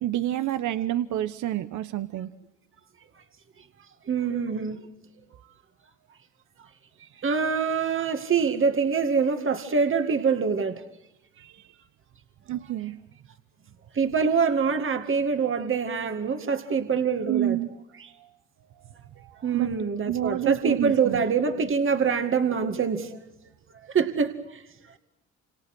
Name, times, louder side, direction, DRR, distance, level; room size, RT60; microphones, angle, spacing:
voice 1, 0.0-2.3 11.4-11.5 12.5-13.0 17.3-17.7 19.5-19.7 20.1-21.2, right 13 dB, 75° right, 12 dB, 1.2 m, -28 dB
voice 2, 4.1-4.8 7.2-10.8 13.9-17.6 18.0-18.1 19.4-23.2 23.8-24.6, right 5 dB, 45° right, 7 dB, 2.3 m, -25 dB
29.0 x 28.0 x 6.2 m, 0.88 s
cardioid pair, 90°, 30 cm